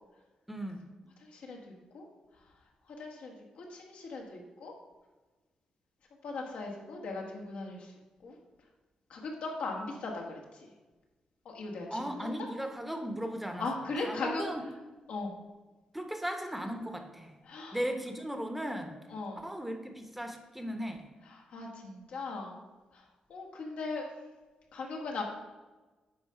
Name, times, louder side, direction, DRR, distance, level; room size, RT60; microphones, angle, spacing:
voice 1, 0.5-0.8 11.9-13.6 14.0-14.6 15.9-17.3 17.7-18.9 19.4-21.1, equal, 5° right, 6 dB, 1.0 m, -37 dB
voice 2, 3.0-4.7 6.2-7.9 8.2-8.4 9.1-10.4 11.5-12.5 13.6-14.4 15.1-15.3 17.5-17.8 19.1-19.4 21.3-22.6 23.3-24.1 24.7-25.2, left 3 dB, 80° left, 0 dB, 1.8 m, -38 dB
9.6 x 3.8 x 5.7 m, 1.2 s
cardioid pair, 90°, 2 cm